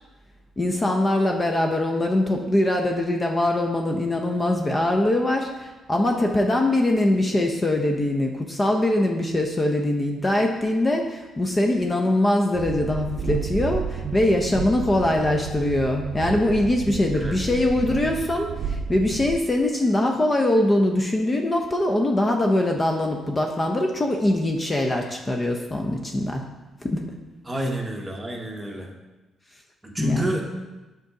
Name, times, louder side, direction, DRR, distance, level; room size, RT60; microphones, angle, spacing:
voice 1, 0.6-26.4 26.8-27.1 30.0-30.4, left 1 dB, 25° left, 2 dB, 0.6 m, -22 dB
Train, 12.5-19.4, right 6 dB, 65° right, 0.6 m, -31 dB
voice 2, 27.4-28.9 29.9-30.4, right 1 dB, 15° right, 1 dB, 1.0 m, -29 dB
5.0 x 3.9 x 5.7 m, 1.1 s
cardioid pair, 90°, 0 cm